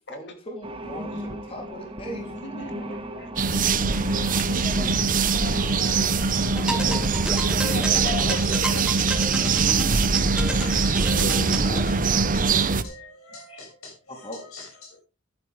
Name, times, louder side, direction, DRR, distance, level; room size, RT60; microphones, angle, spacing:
voice 1, 0.1-2.3 4.6-5.0 6.5-7.2 8.2-8.9 11.5-12.1 13.5-13.7 14.2-14.4, equal, 25° left, 3.5 m, -39 dB
sound 1, 0.6-7.6, equal, 25° right, 1.7 m, -36 dB
voice 2, 2.3-3.3 3.7-9.6 11.1-11.5, left 3 dB, 55° left, 3.0 m, -37 dB
sound 2, 3.4-12.8, right 4 dB, 40° right, 0.8 m, -22 dB
voice 3, 5.3-11.6 11.9-15.0, left 3 dB, 85° left, 6.8 m, -45 dB
sound 3, 6.5-11.9, right 1 dB, 5° right, 1.6 m, -32 dB
13.5 x 11.0 x 3.5 m
head